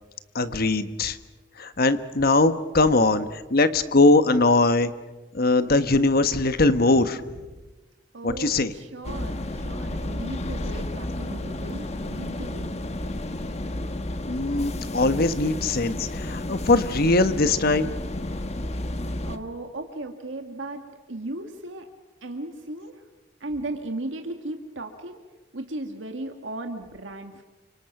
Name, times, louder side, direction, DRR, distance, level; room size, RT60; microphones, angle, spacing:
voice 1, 0.3-1.2 1.6-4.9 5.3-7.2 8.2-8.7 14.3-17.9, left 2 dB, 55° left, 11 dB, 1.3 m, -21 dB
voice 2, 8.1-12.8 19.2-20.8 21.1-21.9 22.2-23.0 23.4-25.2 25.5-27.4, right 2 dB, 80° right, 4 dB, 1.9 m, -36 dB
sound 1, 9.0-19.4, left 1 dB, 35° left, 1.3 m, -32 dB
29.5 x 25.5 x 6.0 m, 1.2 s
head